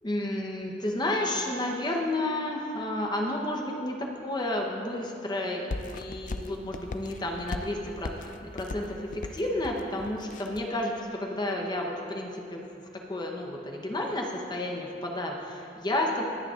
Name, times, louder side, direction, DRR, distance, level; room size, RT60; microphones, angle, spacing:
voice 1, 0.0-5.7 5.9-12.6 13.1-16.2, left 1 dB, 25° left, 0 dB, 0.9 m, -31 dB
sound 1, 5.7-10.7, left 2 dB, 45° left, 0.4 m, -38 dB
20.5 x 9.5 x 2.5 m, 2.6 s
head